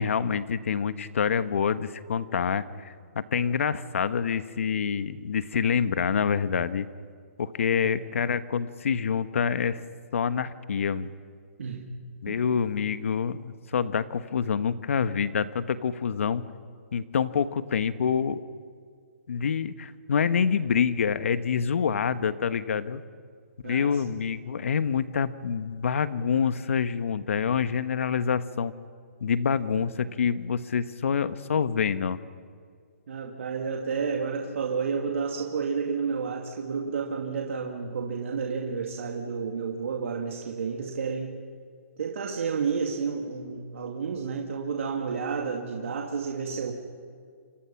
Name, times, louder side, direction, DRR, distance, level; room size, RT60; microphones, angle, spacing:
voice 1, 0.0-6.9 7.4-9.8 10.1-11.1 12.2-16.5 16.9-18.4 19.3-23.0 23.6-28.7 29.2-32.2, left 7 dB, 65° left, 12 dB, 1.2 m, -27 dB
voice 2, 23.6-24.2 29.5-29.6 33.1-41.4 42.0-46.7, right 5 dB, 65° right, 0 dB, 2.5 m, -31 dB
28.5 x 26.5 x 5.9 m, 2.1 s
hypercardioid pair, 165°, 8 cm